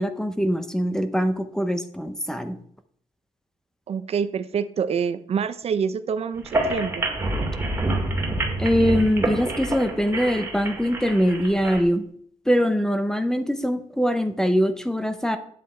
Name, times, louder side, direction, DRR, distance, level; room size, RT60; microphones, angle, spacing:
voice 1, 0.0-2.6 8.6-12.1 12.5-15.4, equal, 5° left, 9 dB, 0.7 m, -23 dB
voice 2, 3.9-7.1, right 7 dB, 50° right, 13 dB, 0.6 m, -26 dB
sound 1, 6.4-11.8, right 2 dB, 15° right, 2.2 m, -27 dB
9.4 x 7.6 x 4.3 m, 0.64 s
wide cardioid pair, 150°, 13 cm